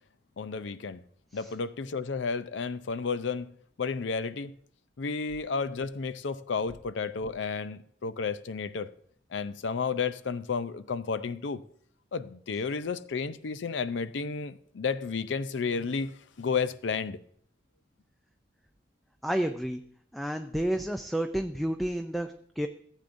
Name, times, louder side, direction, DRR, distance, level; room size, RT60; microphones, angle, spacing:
voice 1, 0.4-1.0 1.3-3.5 3.8-4.6 5.0-8.9 9.3-11.6 12.1-17.2, left 5 dB, 80° left, 0.5 m, -32 dB
voice 2, 19.2-19.8 20.1-22.7, right 1 dB, ahead, 0.4 m, -30 dB
15.5 x 8.3 x 2.6 m
head